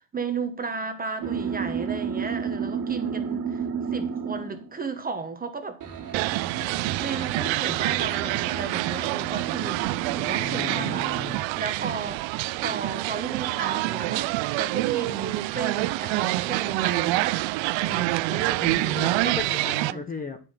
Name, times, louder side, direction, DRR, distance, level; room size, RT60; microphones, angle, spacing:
voice 1, 0.1-3.6 3.9-5.8 7.0-9.8 10.1-11.1 11.6-12.2 12.6-17.5 17.8-19.3 19.9-20.0, right 4 dB, 20° right, 1.1 m, -34 dB
sound 1, 1.2-4.7 5.8-11.3, right 7 dB, 40° right, 2.2 m, -32 dB
sound 2, 6.1-19.9, right 20 dB, 70° right, 0.5 m, -27 dB
voice 2, 10.4-11.5 18.6-20.4, left 4 dB, 20° left, 0.8 m, -35 dB
9.2 x 5.4 x 5.7 m
cardioid pair, 150°, 47 cm